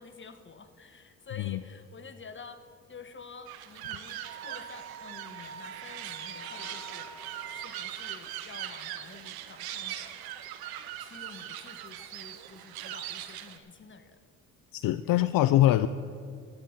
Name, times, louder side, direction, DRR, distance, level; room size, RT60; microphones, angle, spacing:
voice 1, 0.0-2.6 2.9-10.2 11.0-14.2 14.8-15.2 15.7-15.8, left 5 dB, 30° left, 9 dB, 1.2 m, -49 dB
sound 1, 3.5-13.6, right 12 dB, 80° right, 0.8 m, -41 dB
Wind instrument woodwind instrument, 4.2-7.7, right 7 dB, 50° right, 1.6 m, -46 dB
sound 2, 5.9-10.4, left 7 dB, 50° left, 1.0 m, -55 dB
voice 2, 14.7-15.9, left 14 dB, 70° left, 13 dB, 0.5 m, -23 dB
11.5 x 7.5 x 8.7 m, 2.4 s
supercardioid pair, 70°, 36 cm